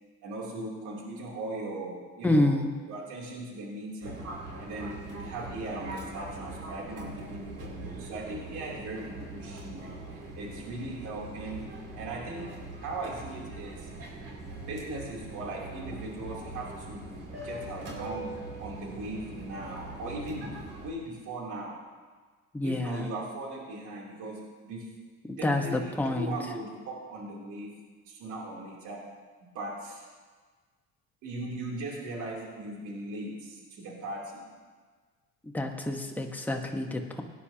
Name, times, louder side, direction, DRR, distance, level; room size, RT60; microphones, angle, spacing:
voice 1, 0.2-2.6 2.9-4.2 4.6-11.7 11.9-12.5 12.8-13.9 14.7-17.1 17.4-18.3 18.6-20.5 20.8-21.7 22.6-24.9 25.4-27.7 28.1-29.0 29.5-30.0 31.2-34.5, right 2 dB, 70° right, -3 dB, 3.4 m, -38 dB
voice 2, 2.2-2.7 22.5-23.1 25.3-26.3 35.5-37.2, left 1 dB, 5° left, 2 dB, 1.3 m, -28 dB
Fixed-wing aircraft airplane, 4.0-20.9, right 2 dB, 50° right, 3.9 m, -42 dB
18.0 x 10.0 x 2.9 m, 1.4 s
supercardioid pair, 90°, 32 cm